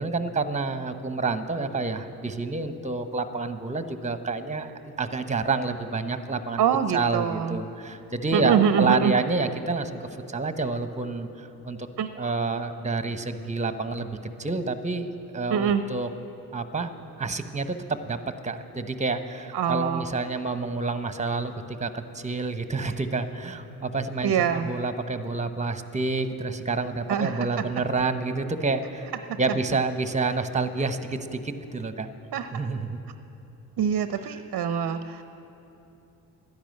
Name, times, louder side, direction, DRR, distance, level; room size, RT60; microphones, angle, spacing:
voice 1, 0.0-6.6 6.9-10.0 10.3-11.9 12.2-14.1 14.4-16.1 16.5-16.9 17.2-18.2 18.4-29.1 29.4-32.1 32.5-33.0, right 3 dB, 15° right, 10 dB, 1.0 m, -28 dB
voice 2, 6.6-7.6 8.3-9.1 12.0-12.1 15.5-15.8 19.5-20.0 24.2-24.7 27.1-27.6 32.3-32.5 33.8-35.2, right 8 dB, 45° right, 10 dB, 0.7 m, -24 dB
12.0 x 10.5 x 7.8 m, 2.9 s
hypercardioid pair, 45°, 47 cm